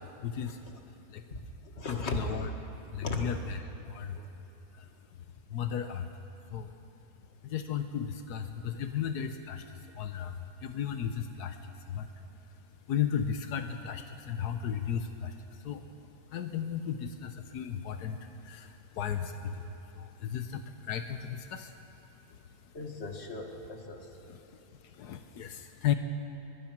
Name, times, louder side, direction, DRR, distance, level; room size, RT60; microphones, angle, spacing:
voice 1, 0.2-0.6 1.1-1.2 1.9-2.5 2.9-3.6 3.8-4.2 4.8-4.9 5.5-6.1 6.5-6.7 7.4-9.7 9.9-11.6 11.9-12.1 12.9-15.3 15.6-15.8 16.3-21.7 24.3-24.4 24.9-25.9, left 8 dB, 85° left, 7 dB, 1.4 m, -35 dB
voice 2, 1.3-2.2 3.0-3.2 4.1-4.3 22.7-24.7, left 2 dB, 45° left, 3 dB, 2.2 m, -39 dB
23.0 x 21.5 x 6.0 m, 2.8 s
omnidirectional pair, 1.6 m